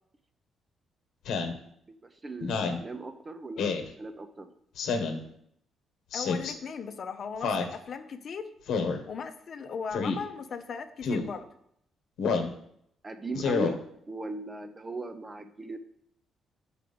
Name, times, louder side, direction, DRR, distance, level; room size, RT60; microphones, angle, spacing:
Speech synthesizer, 1.3-1.6 2.4-2.8 3.6-3.9 4.8-5.2 6.1-6.5 7.4-7.7 8.7-9.0 9.9-10.2 11.0-11.3 12.2-12.5 13.3-13.7, left 4 dB, 75° left, 1.0 m, -28 dB
voice 1, 1.9-3.7 4.0-4.5 13.0-13.8 14.1-15.8, right 2 dB, 25° right, 9 dB, 0.7 m, -38 dB
voice 2, 6.1-8.5 9.1-11.5, left 6 dB, 55° left, 7 dB, 0.7 m, -38 dB
6.6 x 4.9 x 5.1 m, 0.72 s
cardioid pair, 90°, 0 cm